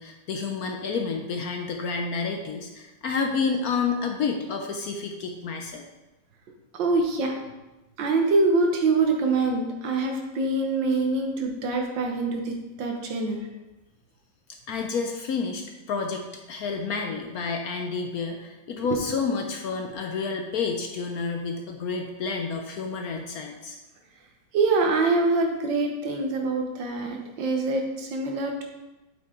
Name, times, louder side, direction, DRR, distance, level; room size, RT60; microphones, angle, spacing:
voice 1, 0.0-5.8 14.7-23.8, left 5 dB, 65° left, 3 dB, 1.0 m, -29 dB
voice 2, 6.7-7.3 8.0-13.4 24.5-28.6, right 3 dB, 75° right, 2 dB, 1.7 m, -24 dB
7.9 x 5.7 x 3.8 m, 1.0 s
omnidirectional pair, 2.0 m